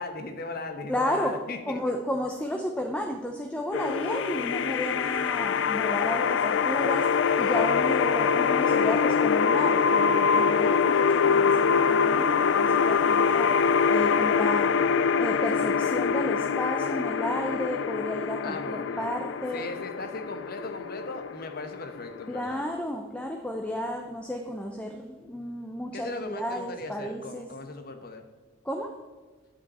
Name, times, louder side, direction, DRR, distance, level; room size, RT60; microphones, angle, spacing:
voice 1, 0.0-1.8 7.6-8.1 18.4-19.1 19.5-22.6 25.9-28.3, left 3 dB, 55° left, 6 dB, 1.1 m, -38 dB
voice 2, 0.9-1.4 1.7-13.5 13.9-14.8 15.1-19.7 22.3-27.5 28.6-29.0, equal, 5° left, 2 dB, 0.7 m, -32 dB
sound 1, 3.7-22.7, left 6 dB, 70° left, 0.3 m, -24 dB
10.0 x 8.1 x 4.2 m, 1.3 s
head